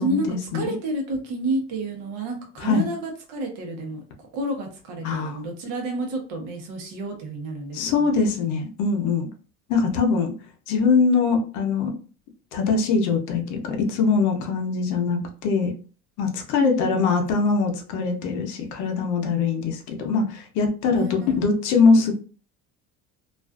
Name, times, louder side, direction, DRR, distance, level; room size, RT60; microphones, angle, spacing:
voice 1, 0.0-0.7 2.6-2.8 5.0-5.4 7.7-9.2 9.7-10.3 10.7-11.9 12.5-15.7 16.2-22.2, left 4 dB, 70° left, 4 dB, 0.6 m, -22 dB
voice 2, 0.5-8.1 16.6-17.1 20.9-21.6, right 2 dB, 85° right, 3 dB, 0.9 m, -30 dB
2.4 x 2.3 x 2.3 m, 0.38 s
cardioid pair, 180°, 31 cm